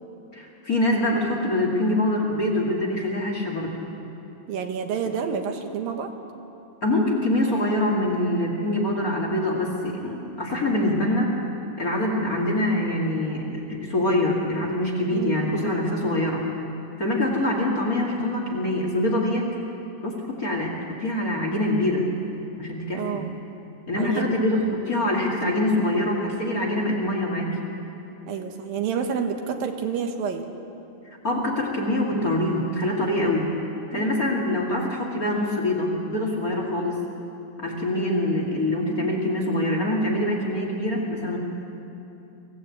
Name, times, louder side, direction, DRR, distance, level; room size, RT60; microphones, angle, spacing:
voice 1, 0.3-3.7 6.8-11.3 11.8-16.4 17.0-19.5 20.0-20.7 21.0-22.1 22.6-23.2 23.9-27.5 31.2-33.5 33.9-37.0 37.6-41.4, left 1 dB, 30° left, -1 dB, 2.4 m, -24 dB
voice 2, 4.5-6.1 15.1-15.5 22.9-23.3 23.9-24.3 28.3-30.5 33.9-34.1, right 6 dB, 85° right, 5 dB, 3.2 m, -29 dB
24.0 x 16.0 x 8.6 m, 2.9 s
omnidirectional pair, 4.0 m